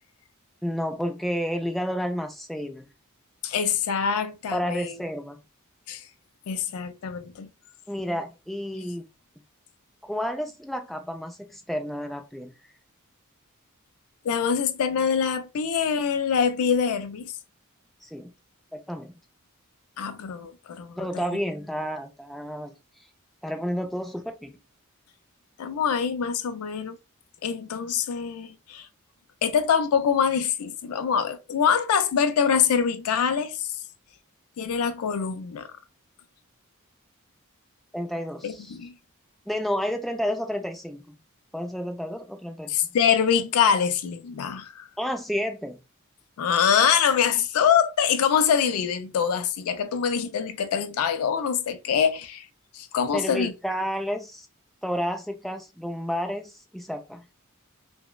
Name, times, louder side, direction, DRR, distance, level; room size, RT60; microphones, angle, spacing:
voice 1, 0.6-2.9 4.5-5.4 7.9-9.0 10.0-12.5 18.0-18.3 18.7-19.1 21.0-22.7 23.4-24.6 37.9-38.8 39.5-41.2 41.5-42.8 45.0-45.8 53.1-54.5 54.8-57.2, equal, ahead, 0.3 m, -31 dB
voice 2, 3.4-4.9 5.9-6.0 6.5-7.5 14.2-17.3 20.0-21.3 25.6-27.0 27.4-28.9 29.4-33.7 34.6-35.7 38.4-38.9 42.7-44.9 46.4-52.5 52.7-53.5, left 7 dB, 80° left, 0.4 m, -24 dB
3.0 x 2.0 x 2.2 m
head